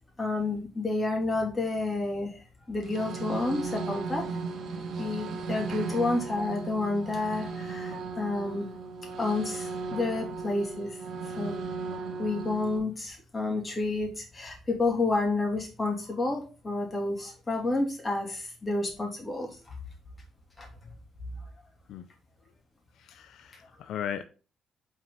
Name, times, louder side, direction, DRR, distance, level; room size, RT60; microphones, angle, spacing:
voice 1, 0.2-2.4 2.7-4.2 5.0-8.7 9.2-11.0 11.4-11.6 12.2-19.5 20.6-20.7, left 2 dB, 25° left, 2.9 m, -30 dB
sound 1, 2.8-12.8, right 4 dB, 65° right, 1.5 m, -36 dB
voice 2, 23.0-24.2, left 9 dB, 80° left, 0.6 m, -37 dB
5.6 x 4.5 x 5.5 m
cardioid pair, 90°, 0 cm